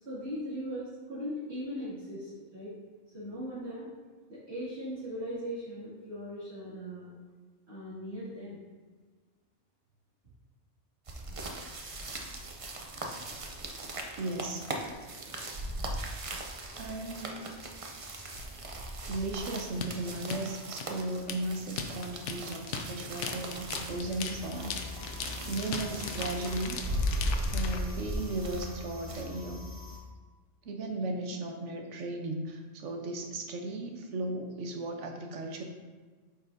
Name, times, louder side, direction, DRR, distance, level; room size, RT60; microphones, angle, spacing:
voice 1, 0.1-2.7 3.1-3.9 4.3-7.1 7.7-8.6, equal, 65° right, -12 dB, 2.4 m, -39 dB
sound 1, 11.1-29.2, right 1 dB, 35° right, 0.6 m, -38 dB
voice 2, 14.2-14.7 16.8-17.4 19.1-25.0 25.4-26.8 27.5-29.6 30.6-35.6, right 2 dB, 85° right, 4 dB, 1.2 m, -36 dB
sound 2, 19.8-27.8, left 6 dB, 80° left, 1.0 m, -38 dB
sound 3, 23.7-30.0, left 3 dB, 30° left, 1.7 m, -45 dB
8.4 x 5.5 x 2.6 m, 1.4 s
omnidirectional pair, 1.2 m